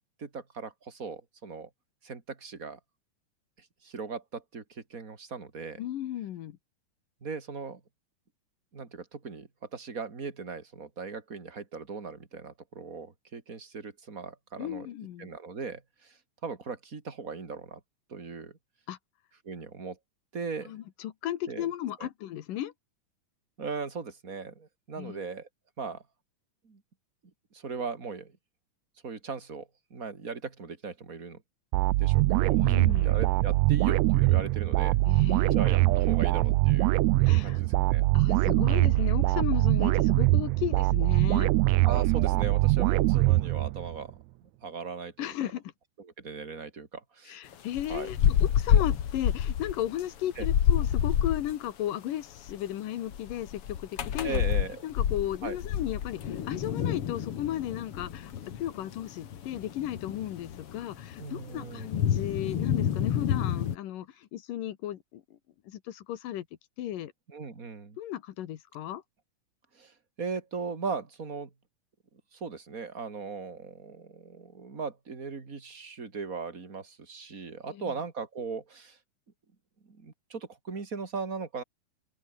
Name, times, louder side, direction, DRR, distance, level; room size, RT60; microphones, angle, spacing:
voice 1, 0.0-1.7 2.0-2.8 3.6-5.8 7.2-7.8 8.7-14.9 15.2-17.8 18.1-18.6 19.4-20.0 20.3-20.7 21.5-21.7 22.0-22.1 23.6-25.5 25.8-26.0 26.6-26.8 27.5-28.3 29.0-31.4 32.0-35.0 35.5-38.1 41.8-45.3 46.0-47.4 47.9-48.1 50.4-50.5 54.2-54.8 55.4-55.6 61.2-61.9 67.3-68.0 69.7-71.5 72.3-79.0 79.8-81.6, right 5 dB, 25° right, 3.1 m, -38 dB
voice 2, 5.8-6.6 14.6-15.3 18.9-19.0 20.7-22.7 25.0-25.2 32.6-33.1 35.1-35.6 37.2-37.6 38.1-41.5 45.2-45.6 47.3-54.4 54.8-58.3 58.6-65.2 65.7-66.5 66.8-67.1 68.0-69.0 77.7-77.9, left 12 dB, 85° left, 3.1 m, -35 dB
sound 1, 31.7-44.0, right 19 dB, 85° right, 1.6 m, -23 dB
sound 2, 47.5-51.5 52.4-52.5 53.1-63.8, left 9 dB, 50° left, 2.1 m, -28 dB
open air
omnidirectional pair, 3.7 m